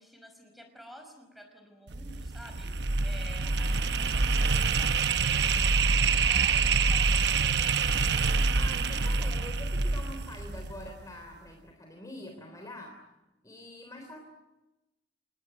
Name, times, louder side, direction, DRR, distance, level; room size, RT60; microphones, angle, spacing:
voice 1, 0.0-7.7, equal, ahead, 6 dB, 5.2 m, -51 dB
sound 1, 1.9-11.0, right 4 dB, 60° right, 0.9 m, -26 dB
voice 2, 8.5-13.0 13.4-14.2, left 1 dB, 20° left, 3 dB, 3.5 m, -45 dB
28.5 x 20.0 x 9.2 m, 1.0 s
head